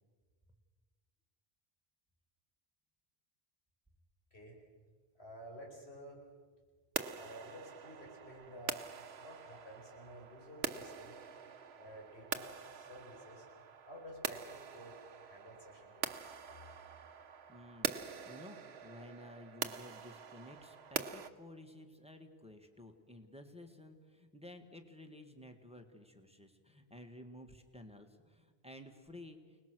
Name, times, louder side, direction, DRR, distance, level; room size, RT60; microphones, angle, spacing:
voice 1, 5.2-6.2 7.1-8.8 9.2-11.2 11.8-13.5 13.9-16.6, equal, 85° left, 0 dB, 5.1 m, -52 dB
sound 1, 7.0-21.3, right 7 dB, 80° right, 1.2 m, -44 dB
voice 2, 17.5-17.9 18.3-29.6, left 1 dB, 5° right, 6 dB, 1.7 m, -53 dB
29.5 x 19.5 x 6.2 m, 1.5 s
omnidirectional pair, 1.1 m